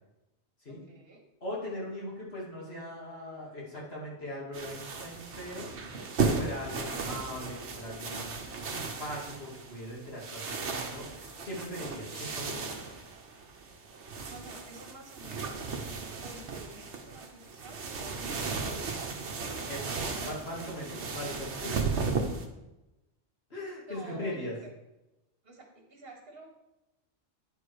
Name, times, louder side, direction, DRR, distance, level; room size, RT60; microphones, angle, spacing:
voice 1, 0.7-1.2 1.7-1.9 14.3-15.7 16.2-19.2 20.2-20.3 23.9-24.7 25.4-26.5, right 2 dB, 55° right, 1 dB, 1.8 m, -50 dB
voice 2, 1.4-5.7 6.2-11.0 11.4-12.7 19.7-22.1 23.5-24.5, left 1 dB, 60° left, -4 dB, 2.7 m, -40 dB
sound 1, 4.5-22.5, right 4 dB, 75° right, 1.3 m, -35 dB
sound 2, 12.1-15.1, left 1 dB, 85° left, 3.1 m, -57 dB
9.6 x 4.9 x 4.8 m, 0.97 s
omnidirectional pair, 1.2 m